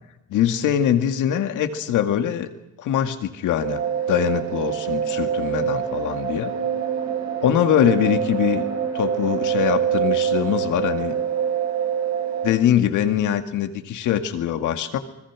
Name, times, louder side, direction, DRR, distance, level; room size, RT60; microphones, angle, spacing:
voice 1, 0.3-2.5 2.8-3.8 4.1-6.5 7.4-8.7 8.9-11.2 12.4-15.0, left 10 dB, 85° left, 7 dB, 2.0 m, -22 dB
sound 1, 3.6-12.5, right 8 dB, 75° right, 7.0 m, -25 dB
28.5 x 21.5 x 6.2 m, 0.92 s
cardioid pair, 90°, 30 cm